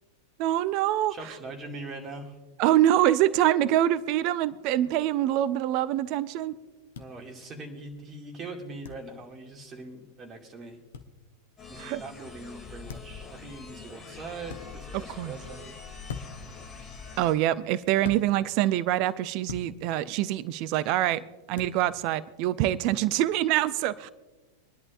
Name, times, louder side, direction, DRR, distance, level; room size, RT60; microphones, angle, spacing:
voice 1, 0.4-1.3 2.6-6.6 11.8-12.0 14.9-15.4 17.2-21.2 21.5-24.1, right 13 dB, 45° right, 17 dB, 0.5 m, -25 dB
voice 2, 1.1-2.3 7.0-10.8 11.7-15.7, right 3 dB, 25° right, 2 dB, 2.3 m, -42 dB
sound 1, 6.9-7.1 8.8-9.0 10.9-11.1 12.9-13.2 14.4-14.6 16.1-16.5 18.0-18.2 19.5-19.7 21.5-21.8, left 6 dB, 60° left, 1.0 m, -39 dB
sound 2, 11.6-17.3, left 5 dB, 25° left, 2.6 m, -44 dB
25.0 x 11.0 x 2.5 m, 1.2 s
figure-of-eight pair, 90°, 0 cm